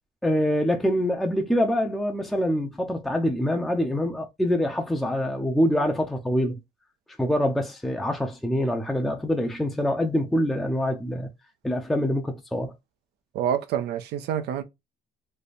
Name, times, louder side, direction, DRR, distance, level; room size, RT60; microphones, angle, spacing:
voice 1, 0.2-6.5 7.2-11.3 11.6-12.7, equal, ahead, 0.7 m, -25 dB
voice 2, 13.3-14.6, right 9 dB, 80° right, 0.8 m, -27 dB
3.4 x 2.2 x 4.0 m
cardioid pair, 110°, 17 cm